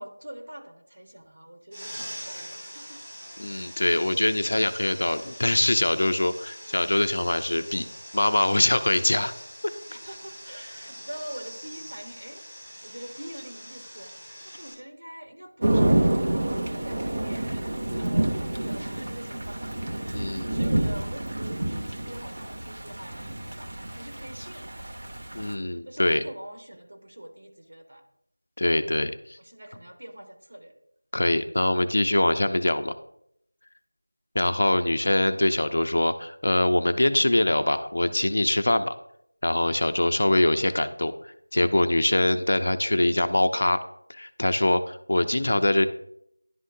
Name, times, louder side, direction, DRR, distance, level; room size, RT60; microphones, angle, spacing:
voice 1, 0.0-3.1 3.4-4.0 9.9-14.1 14.4-19.7 20.0-25.1 25.6-28.0 29.4-30.7, right 1 dB, 60° right, 2 dB, 1.3 m, -44 dB
sound 1, 1.7-14.7, equal, 10° right, 1.0 m, -43 dB
voice 2, 3.4-7.9 8.1-9.3 20.1-20.6 25.3-26.2 28.6-29.4 31.1-32.9 34.3-39.0 39.4-43.8 44.1-45.9, left 1 dB, 45° left, 10 dB, 0.5 m, -23 dB
Thunder / Rain, 15.6-25.5, right 1 dB, 35° right, 0.6 m, -28 dB
11.0 x 3.8 x 2.6 m, 0.73 s
figure-of-eight pair, 175°, 0 cm